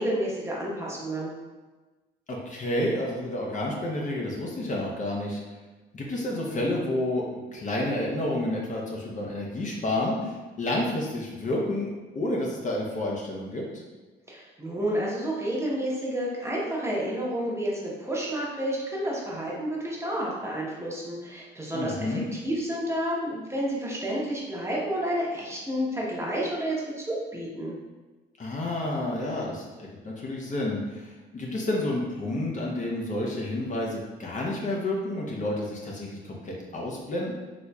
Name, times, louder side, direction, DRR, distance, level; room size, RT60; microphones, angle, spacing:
voice 1, 0.0-1.3 14.3-27.8, right 1 dB, 15° right, -5 dB, 0.9 m, -30 dB
voice 2, 2.3-5.4 5.9-13.6 21.7-22.3 28.4-37.3, left 1 dB, 40° left, -2 dB, 0.7 m, -30 dB
4.0 x 3.0 x 2.3 m, 1.2 s
cardioid pair, 90°, 20 cm